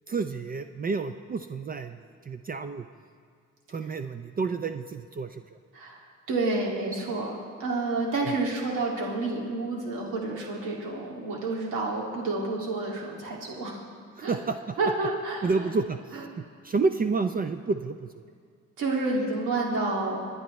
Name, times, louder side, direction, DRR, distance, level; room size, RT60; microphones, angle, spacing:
voice 1, 0.1-2.9 3.7-5.5 8.2-8.4 14.2-14.8 15.4-18.1, right 4 dB, 30° right, 8 dB, 0.5 m, -30 dB
voice 2, 6.3-13.8 14.2-14.3 14.8-15.7 18.8-20.2, right 3 dB, 85° right, -2 dB, 2.4 m, -29 dB
27.0 x 9.5 x 3.2 m, 2.1 s
cardioid pair, 90°, 30 cm